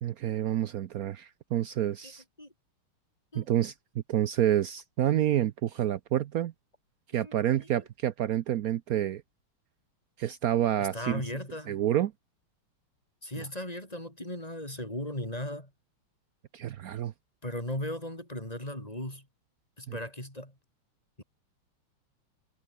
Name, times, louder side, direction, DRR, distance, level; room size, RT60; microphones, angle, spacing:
voice 1, 0.0-2.2 3.3-3.7 4.1-6.5 7.1-9.2 10.2-11.2 11.7-12.1 13.4-13.5 16.5-17.1 19.9-20.0, right 11 dB, 80° right, 0.8 m, -28 dB
voice 2, 7.1-7.7 10.8-11.8 13.2-15.7 17.4-19.3 19.8-20.5 21.2-21.3, left 1 dB, 15° left, 6.5 m, -37 dB
omnidirectional pair, 2.4 m